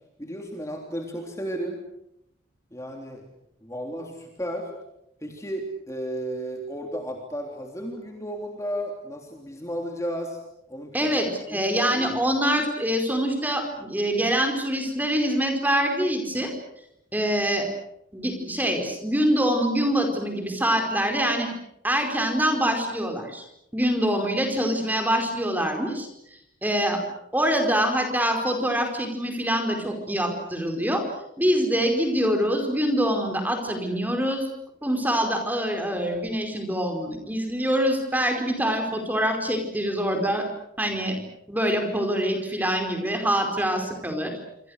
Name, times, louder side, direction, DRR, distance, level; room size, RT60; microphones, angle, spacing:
voice 1, 0.2-1.8 2.7-3.2 3.6-4.7 5.2-10.4 10.7-11.1 11.5-11.7 12.1-12.2, equal, 15° left, 2 dB, 3.3 m, -33 dB
voice 2, 10.9-16.5 17.1-17.6 18.1-21.5 21.8-23.4 23.7-26.1 26.6-27.0 27.3-31.0 31.4-34.5 34.8-40.5 40.8-41.2 41.5-44.3, equal, 10° right, 4 dB, 4.8 m, -25 dB
27.5 x 26.0 x 6.6 m, 0.78 s
head